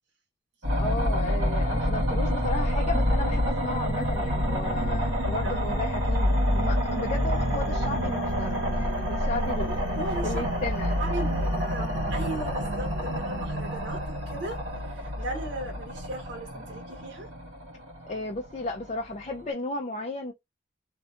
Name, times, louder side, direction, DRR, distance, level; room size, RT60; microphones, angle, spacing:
sound 1, 0.6-19.4, equal, 90° right, 1.3 m, -28 dB
voice 1, 0.7-10.0 10.2-11.0 18.1-20.3, left 2 dB, 35° left, 0.4 m, -34 dB
voice 2, 5.4-5.9 10.0-10.4 11.0-17.3, right 1 dB, 65° right, 1.3 m, -37 dB
2.6 x 2.3 x 2.4 m
head